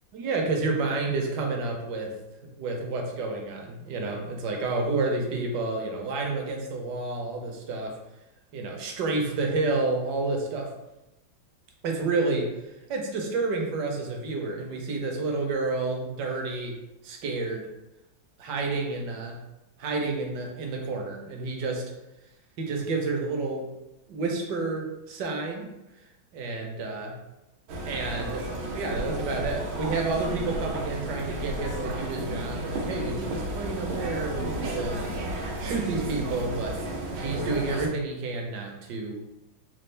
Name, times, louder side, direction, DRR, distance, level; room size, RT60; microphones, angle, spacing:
voice 1, 0.1-2.1 2.6-7.9 8.5-10.7 11.8-12.5 12.9-16.8 17.0-17.7 18.4-19.4 19.8-21.8 22.6-23.7 24.1-25.7 26.3-27.2 27.9-28.4 28.7-35.0 35.6-36.7 37.1-39.2, right 3 dB, 65° right, 1 dB, 1.2 m, -30 dB
sound 1, 27.7-37.9, right 1 dB, 85° right, 1.5 m, -33 dB
4.3 x 2.3 x 3.2 m, 0.97 s
omnidirectional pair, 2.2 m